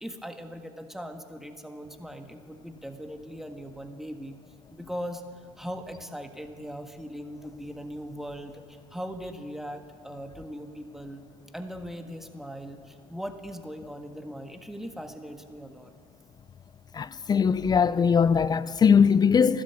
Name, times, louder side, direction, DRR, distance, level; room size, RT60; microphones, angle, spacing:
voice 1, 0.0-4.4 4.7-11.2 11.5-15.9, equal, 5° right, 1.5 m, -39 dB
voice 2, 17.0-19.6, left 6 dB, 30° left, 0.4 m, -21 dB
14.5 x 12.5 x 8.2 m
hypercardioid pair, 80°, 15 cm